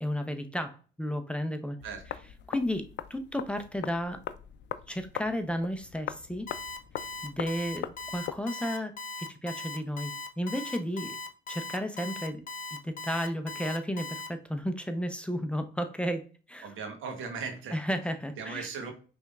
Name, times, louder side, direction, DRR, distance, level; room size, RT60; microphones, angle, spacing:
voice 1, 0.0-1.8 2.5-4.2 4.9-6.5 7.2-8.9 9.3-11.2 11.5-12.4 12.8-16.7 17.7-18.7, equal, 5° left, 0.6 m, -33 dB
sound 1, 1.8-8.4, left 10 dB, 60° left, 0.4 m, -41 dB
voice 2, 1.8-2.2 16.6-17.8 18.4-18.9, right 5 dB, 85° right, 1.1 m, -38 dB
Alarm, 6.5-14.3, left 3 dB, 40° left, 0.8 m, -39 dB
5.1 x 3.4 x 2.4 m
cardioid pair, 90°, 20 cm